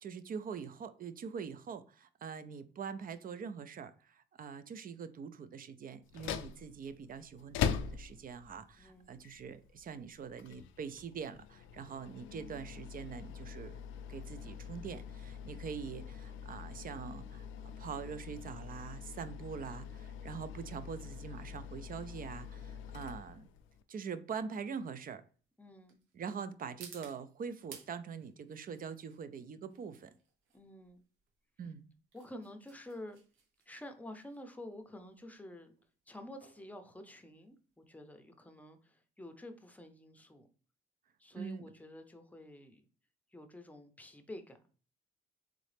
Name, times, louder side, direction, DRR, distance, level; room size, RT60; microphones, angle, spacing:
voice 1, 0.0-13.8 14.1-23.5 23.9-25.2 26.1-30.1 31.6-31.9 41.3-41.7, right 6 dB, 45° right, 12 dB, 0.5 m, -44 dB
sound 1, 6.0-23.8, left 7 dB, 80° left, 0.4 m, -43 dB
voice 2, 8.8-9.2 15.5-15.8 25.6-26.0 30.5-31.0 32.1-33.2 33.7-35.7 36.1-40.5 41.2-42.8 43.3-44.6, left 1 dB, 5° left, 6 dB, 0.7 m, -49 dB
sound 2, 22.7-37.8, right 6 dB, 80° right, 0.9 m, -60 dB
3.7 x 3.2 x 3.3 m, 0.40 s
cardioid pair, 90°, 20 cm